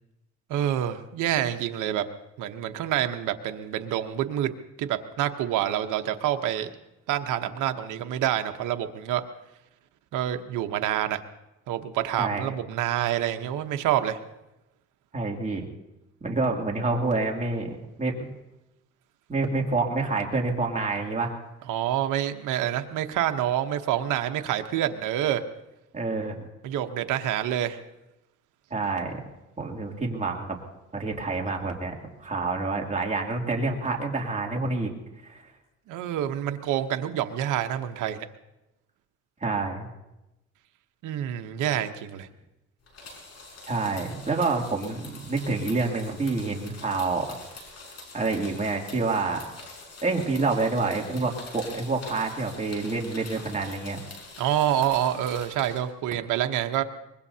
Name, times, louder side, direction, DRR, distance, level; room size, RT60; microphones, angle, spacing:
voice 1, 0.5-2.1 2.4-4.5 4.8-6.7 7.1-9.2 10.1-11.2 11.7-14.2 21.7-25.4 26.6-27.8 35.9-38.3 41.0-42.3 54.4-56.8, right 11 dB, 90° right, 7 dB, 0.9 m, -27 dB
voice 2, 12.2-12.5 15.1-15.6 16.2-18.3 19.3-21.3 25.9-26.4 28.7-29.1 29.6-30.6 30.9-31.9 32.2-34.9 35.2-35.4 39.4-39.9 43.7-47.3 48.1-49.4 50.0-54.0, right 3 dB, 25° right, 0 dB, 2.7 m, -27 dB
sound 1, 42.9-55.8, left 3 dB, 55° left, 5.7 m, -45 dB
24.0 x 21.0 x 2.8 m, 0.96 s
cardioid pair, 90°, 30 cm